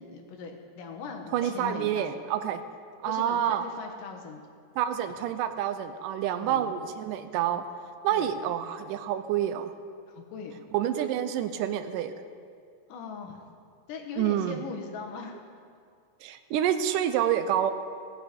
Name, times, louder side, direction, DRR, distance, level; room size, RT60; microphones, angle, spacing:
voice 1, 0.0-2.2 3.0-4.4 6.3-6.7 8.1-8.4 10.1-10.6 12.9-13.4 13.9-15.5, left 5 dB, 90° left, 2 dB, 2.9 m, -40 dB
voice 2, 1.3-2.6 3.0-3.6 4.8-7.7 8.0-9.7 10.7-12.1 14.2-14.6 16.2-17.7, right 10 dB, 90° right, 10 dB, 2.2 m, -28 dB
18.0 x 8.7 x 5.2 m, 2.2 s
omnidirectional pair, 3.7 m